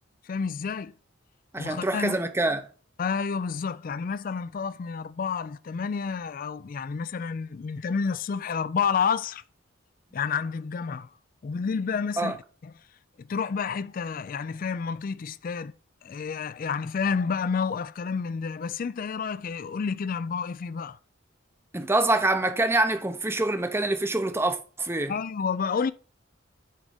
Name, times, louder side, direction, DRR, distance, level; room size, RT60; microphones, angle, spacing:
voice 1, 0.2-0.9 1.6-2.2 3.0-9.4 10.1-11.1 11.4-12.4 13.2-15.7 16.0-21.0 25.1-25.9, left 5 dB, 45° left, 0.3 m, -29 dB
voice 2, 1.5-2.7 12.2-12.3 21.7-25.1, right 2 dB, 10° right, 0.6 m, -25 dB
9.2 x 3.6 x 5.0 m
head